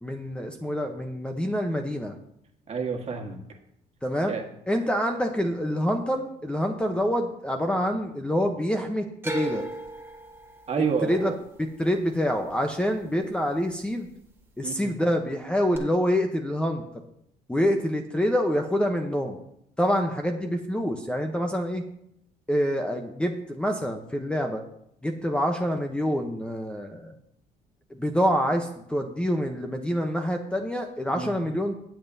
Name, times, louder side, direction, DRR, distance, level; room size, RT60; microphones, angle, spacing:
voice 1, 0.0-2.1 4.0-4.3 4.7-9.6 11.0-14.1 14.6-16.8 17.5-19.4 19.8-21.8 22.5-24.6 25.0-27.1 27.9-31.7, equal, 5° left, 4 dB, 0.9 m, -26 dB
voice 2, 2.7-3.4 4.3-4.4 10.7-11.3 14.6-14.9 31.1-31.4, right 5 dB, 40° right, 3 dB, 1.7 m, -29 dB
sound 1, 9.2-13.4 13.7-14.4 15.7-15.8, right 2 dB, 15° right, 1.5 m, -36 dB
16.5 x 7.8 x 2.8 m, 0.74 s
cardioid pair, 110°, 17 cm